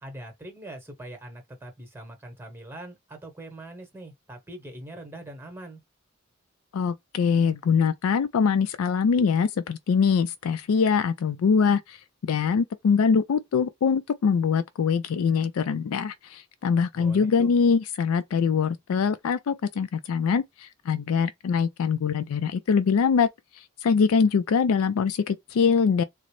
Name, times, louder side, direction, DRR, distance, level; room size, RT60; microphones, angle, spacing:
voice 1, 0.0-5.8 17.0-17.5, right 1 dB, 10° right, 1.0 m, -42 dB
voice 2, 6.7-23.3 23.5-26.0, left 6 dB, 85° left, 0.4 m, -23 dB
3.8 x 2.0 x 3.1 m
head